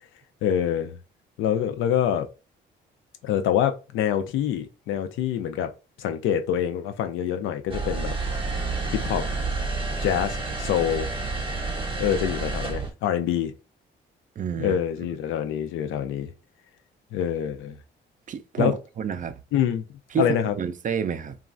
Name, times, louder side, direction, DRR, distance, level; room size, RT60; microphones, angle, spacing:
voice 1, 0.4-1.0 1.4-2.3 3.2-5.7 6.0-8.1 8.9-9.3 10.0-11.1 12.0-13.5 14.6-16.3 17.1-17.8 18.6-18.8 19.5-19.8 20.2-20.5, left 9 dB, 90° left, 0.5 m, -25 dB
sound 1, 7.7-12.9, right 3 dB, 25° right, 0.9 m, -29 dB
voice 2, 14.4-14.8 18.3-19.3 20.1-21.4, right 7 dB, 40° right, 0.4 m, -29 dB
3.0 x 2.3 x 2.5 m
cardioid pair, 90°, 20 cm